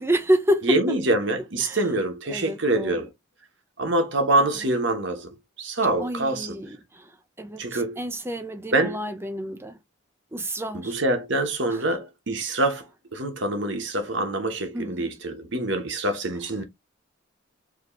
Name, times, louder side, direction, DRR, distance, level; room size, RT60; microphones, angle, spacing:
voice 1, 0.0-0.7 1.6-1.8 2.3-3.0 6.0-7.1 7.4-9.8 10.3-10.9 11.7-11.8 14.7-15.1, right 1 dB, 10° right, 0.6 m, -28 dB
voice 2, 0.6-3.1 3.8-5.3 5.6-6.5 7.6-8.0 8.7-9.0 10.7-12.9 13.1-16.6, right 2 dB, 60° right, 1.1 m, -25 dB
4.9 x 3.0 x 3.1 m
head